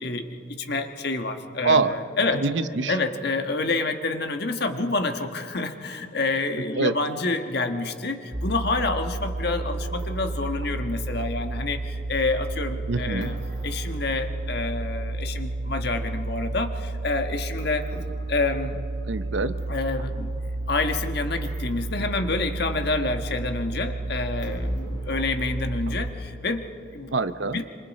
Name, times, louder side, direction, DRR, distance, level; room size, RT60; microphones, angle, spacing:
voice 1, 0.0-2.5 2.9-13.4 13.6-17.9 18.3-18.8 19.7-20.3 20.7-27.1 27.5-27.6, left 3 dB, 55° left, 6 dB, 1.4 m, -28 dB
voice 2, 2.3-2.9 6.7-6.9 12.9-13.3 19.1-19.6 27.1-27.6, right 4 dB, 70° right, 12 dB, 0.8 m, -24 dB
sound 1, 8.3-26.1, right 2 dB, 90° right, 3.1 m, -31 dB
27.0 x 25.5 x 4.2 m, 2.7 s
head